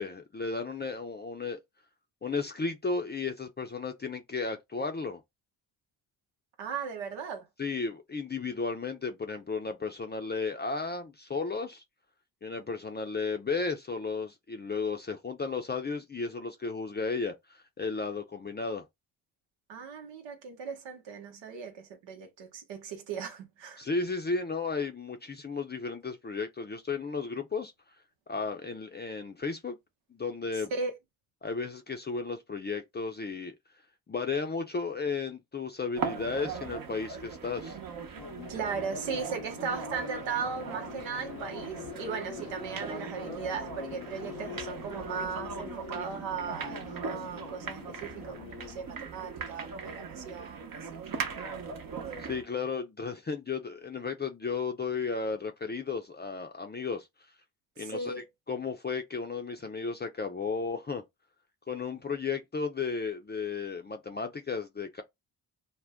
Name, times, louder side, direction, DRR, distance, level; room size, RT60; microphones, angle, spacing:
voice 1, 0.0-1.6 2.2-5.2 7.6-11.8 12.4-18.8 23.8-27.7 28.3-29.8 30.1-30.7 31.4-33.5 34.1-37.8 52.2-57.1 57.8-58.1 58.5-61.0 61.7-65.0, left 4 dB, 25° left, 0.5 m, -34 dB
voice 2, 6.6-7.5 19.7-23.9 30.7-30.9 38.5-51.0 57.8-58.2, right 5 dB, 85° right, 0.9 m, -37 dB
sound 1, 36.0-52.5, right 5 dB, 50° right, 0.8 m, -39 dB
sound 2, 38.2-48.9, left 11 dB, 80° left, 0.7 m, -45 dB
2.3 x 2.1 x 3.4 m
supercardioid pair, 55°, 44 cm